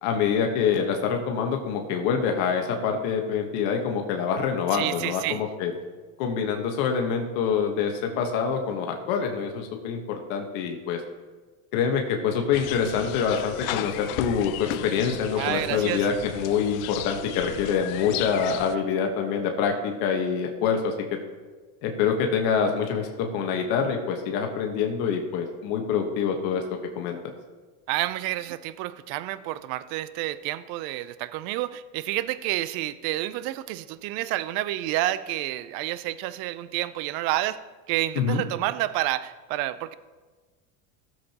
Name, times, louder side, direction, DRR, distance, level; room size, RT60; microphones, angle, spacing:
voice 1, 0.0-5.7 6.2-11.0 11.7-20.9 21.8-26.6 26.9-27.2 38.1-38.4, left 6 dB, 65° left, 3 dB, 1.3 m, -26 dB
voice 2, 4.7-5.4 15.4-16.1 27.9-37.6 37.9-39.9, right 15 dB, 55° right, 15 dB, 0.6 m, -29 dB
sound 1, 12.5-18.7, left 13 dB, 80° left, 0.6 m, -35 dB
15.5 x 7.5 x 2.9 m, 1.3 s
supercardioid pair, 125°, 42 cm